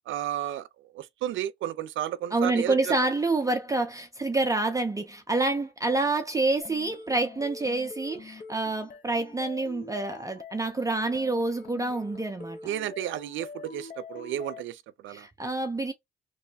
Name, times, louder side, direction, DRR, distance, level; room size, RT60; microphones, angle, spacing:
voice 1, 0.1-0.7 0.9-2.9 12.6-15.3, right 12 dB, 75° right, 0.5 m, -32 dB
voice 2, 2.3-12.6 15.1-15.9, right 2 dB, 15° right, 0.5 m, -27 dB
sound 1, 6.6-14.6, left 4 dB, 45° left, 0.8 m, -44 dB
3.0 x 2.2 x 3.9 m
cardioid pair, 90°, 20 cm